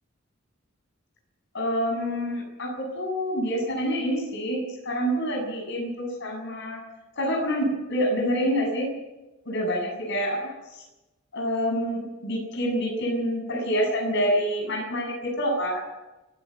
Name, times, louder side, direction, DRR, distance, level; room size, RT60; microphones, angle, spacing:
voice 1, 1.5-6.8 7.2-8.9 9.5-10.5 11.3-15.8, equal, 60° left, 1 dB, 7.1 m, -27 dB
30.0 x 11.0 x 8.3 m, 1.0 s
head